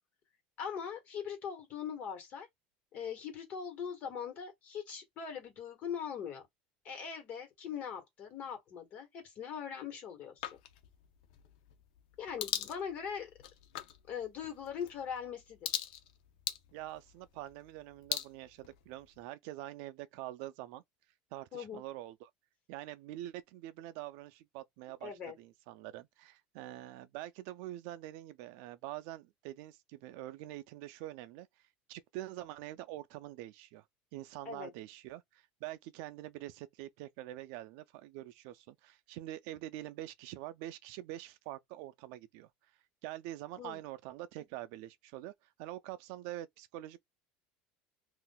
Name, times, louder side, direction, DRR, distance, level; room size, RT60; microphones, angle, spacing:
voice 1, 0.6-2.5 2.9-6.4 6.8-10.6 12.2-13.3 14.1-15.8 21.5-21.8 25.0-25.3 34.4-34.7 43.6-43.8, left 7 dB, 40° left, 1.4 m, -41 dB
sound 1, 10.4-19.2, left 11 dB, 85° left, 0.6 m, -43 dB
voice 2, 16.7-20.8 21.3-22.3 22.7-25.1 25.4-31.5 31.9-33.8 34.1-42.5 43.0-45.3 45.6-47.0, right 15 dB, 65° right, 0.3 m, -45 dB
3.6 x 2.5 x 2.2 m
cardioid pair, 155°, 4 cm